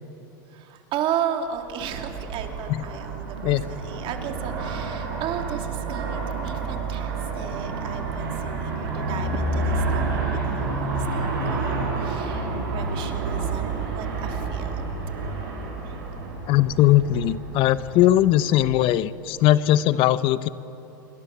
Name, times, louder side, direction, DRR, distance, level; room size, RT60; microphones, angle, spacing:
voice 1, 0.5-14.9 15.8-16.0, right 9 dB, 50° right, 4 dB, 3.0 m, -34 dB
Aircraft, 1.6-18.8, right 3 dB, 85° right, 7.3 m, -29 dB
voice 2, 16.5-20.5, left 13 dB, 55° left, 15 dB, 0.9 m, -19 dB
27.5 x 23.5 x 7.4 m, 3.0 s
supercardioid pair, 110°, 11 cm